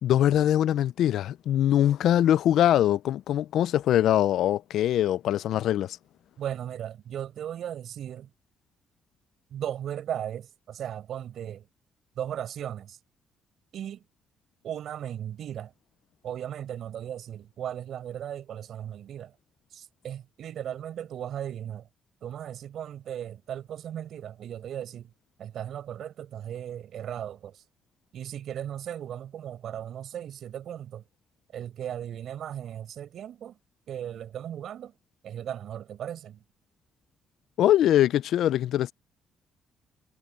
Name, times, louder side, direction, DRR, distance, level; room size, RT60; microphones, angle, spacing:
voice 1, 0.0-6.0 37.6-38.9, left 11 dB, 75° left, 0.5 m, -22 dB
voice 2, 6.4-8.3 9.5-11.7 12.2-13.0 13.7-14.0 14.6-15.7 16.2-19.3 19.7-21.9 22.2-25.1 25.4-27.6 28.1-31.0 31.5-33.6 33.9-34.9 35.2-36.4, right 10 dB, 70° right, 5.8 m, -36 dB
cardioid pair, 90°, 0 cm